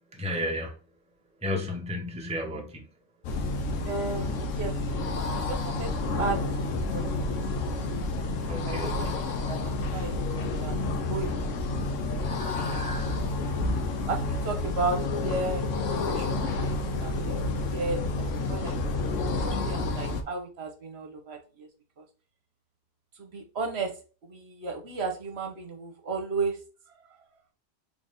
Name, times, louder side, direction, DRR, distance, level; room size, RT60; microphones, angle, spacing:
voice 1, 0.1-0.8 1.4-2.9 8.5-9.2 9.4-9.6 12.3-13.2, left 1 dB, 5° right, 1 dB, 0.8 m, -34 dB
sound 1, 3.2-20.2, left 2 dB, 85° left, 1.1 m, -29 dB
voice 2, 3.9-4.7 5.5-5.9 6.2-7.8 8.5-9.1 9.5-10.2 10.6-11.3 11.9-12.2 13.4-15.6 15.9-16.5 17.0-17.4 17.7-18.8 19.1-21.7 23.2-23.9 24.2-26.6, right 3 dB, 60° right, 4 dB, 1.1 m, -34 dB
4.0 x 3.4 x 3.3 m, 0.36 s
omnidirectional pair, 1.3 m